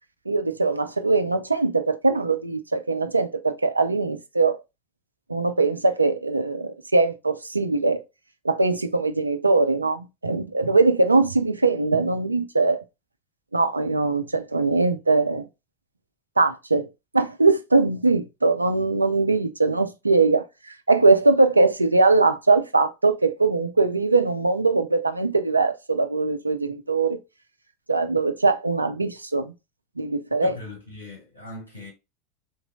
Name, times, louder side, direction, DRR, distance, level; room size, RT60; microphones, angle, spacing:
voice 1, 0.3-4.6 5.3-8.0 8.4-12.8 13.5-15.5 16.4-16.9 17.1-27.2 27.9-29.5 30.0-30.6, right 3 dB, 85° right, 0.3 m, -21 dB
voice 2, 30.4-31.9, left 2 dB, 85° left, 1.5 m, -39 dB
3.8 x 3.0 x 2.4 m
figure-of-eight pair, 80°, 0 cm